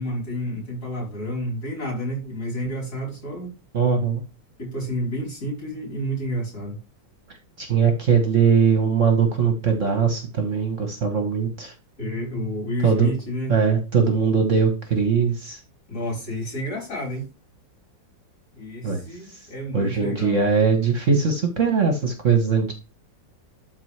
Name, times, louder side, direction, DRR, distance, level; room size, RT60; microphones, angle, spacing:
voice 1, 0.0-3.5 4.6-6.8 12.0-13.6 15.9-17.3 18.6-20.5, equal, 55° left, 4.6 m, -30 dB
voice 2, 3.7-4.2 7.6-11.7 12.8-13.1 13.5-15.6 18.8-19.0 19.7-22.7, right 6 dB, 45° right, 1.4 m, -20 dB
12.0 x 4.3 x 3.3 m
omnidirectional pair, 2.0 m